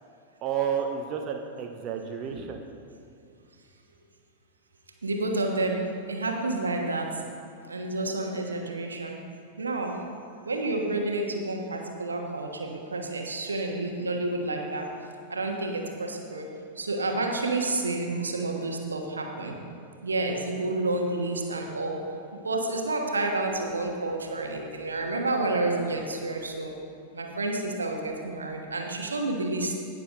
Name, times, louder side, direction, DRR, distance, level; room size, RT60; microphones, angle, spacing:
voice 1, 0.4-2.6, right 7 dB, 35° right, 3 dB, 0.8 m, -31 dB
voice 2, 5.0-7.2 7.6-9.2 9.6-10.0 10.4-14.9 15.3-16.5 16.7-19.6 20.0-26.7 27.1-29.8, right 2 dB, 75° right, 2 dB, 1.2 m, -30 dB
17.5 x 6.6 x 3.8 m, 2.3 s
figure-of-eight pair, 90°, 0 cm